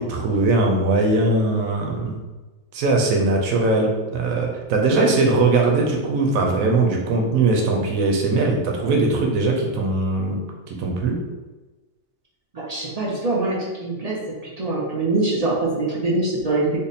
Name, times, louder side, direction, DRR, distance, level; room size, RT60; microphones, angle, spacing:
voice 1, 0.0-2.2 2.7-11.2, right 3 dB, 90° right, 0 dB, 1.1 m, -20 dB
voice 2, 12.5-14.2 14.6-16.8, right 2 dB, 50° right, -5 dB, 0.4 m, -23 dB
3.5 x 2.1 x 4.0 m, 1.2 s
omnidirectional pair, 1.4 m